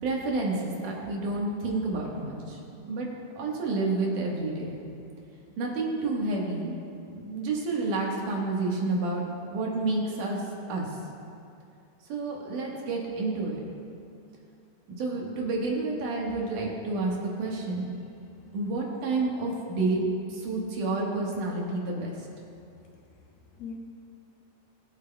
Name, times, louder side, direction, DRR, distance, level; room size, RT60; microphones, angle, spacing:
voice 1, 0.0-2.6 2.9-3.1 3.4-4.8 5.6-6.7 7.1-9.2 9.5-10.4 10.7-10.9 12.1-13.7 15.0-17.9 18.5-20.0 20.3-22.1, right 3 dB, 65° right, -2 dB, 2.8 m, -29 dB
voice 2, 18.2-18.5 22.7-23.0 23.5-23.7, left 7 dB, 85° left, -1 dB, 3.1 m, -44 dB
22.0 x 8.0 x 2.3 m, 2.5 s
omnidirectional pair, 4.1 m